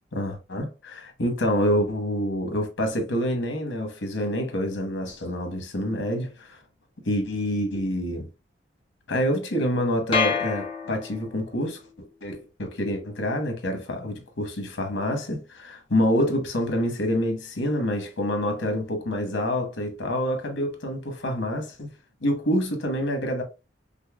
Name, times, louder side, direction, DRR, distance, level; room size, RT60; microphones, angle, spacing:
voice 1, 0.1-6.6 7.0-8.3 9.1-21.9 22.2-23.4, equal, 85° left, 1.1 m, -27 dB
sound 1, 10.1-11.5, left 5 dB, 30° left, 0.9 m, -27 dB
5.3 x 2.1 x 2.3 m
head